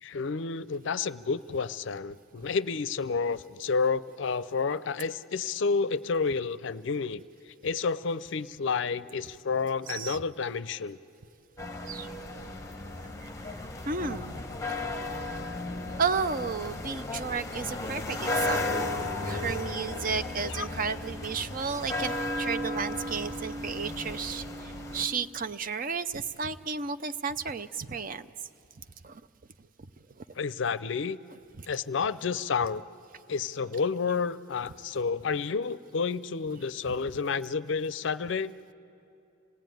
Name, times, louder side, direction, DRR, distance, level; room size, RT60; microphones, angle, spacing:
voice 1, 0.0-11.0 14.0-14.2 20.4-20.7 30.4-31.2 31.7-32.8 33.3-38.5, left 5 dB, 65° left, 17 dB, 0.5 m, -30 dB
voice 2, 9.9-10.2 11.9-12.1 13.2-13.3 13.8-14.3 16.0-28.3 29.0-29.2 31.6-31.7, right 5 dB, 40° right, 12 dB, 0.6 m, -33 dB
sound 1, 11.6-25.1, left 2 dB, 15° left, 1.1 m, -34 dB
27.0 x 18.5 x 9.2 m, 2.7 s
head